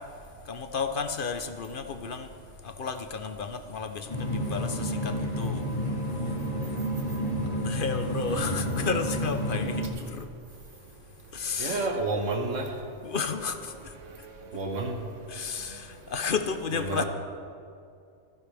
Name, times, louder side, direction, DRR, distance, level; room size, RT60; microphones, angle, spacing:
voice 1, 0.5-2.3 2.6-5.6 7.6-10.3 11.3-11.9 13.0-13.9 15.3-17.0, left 5 dB, 50° left, 8 dB, 0.9 m, -32 dB
sound 1, 4.1-9.9, equal, 30° left, 1.9 m, -30 dB
voice 2, 8.3-8.9 11.6-12.7 14.2-15.0 16.9-17.0, right 2 dB, 85° right, 2 dB, 1.6 m, -31 dB
25.5 x 11.0 x 3.4 m, 2.4 s
omnidirectional pair, 1.3 m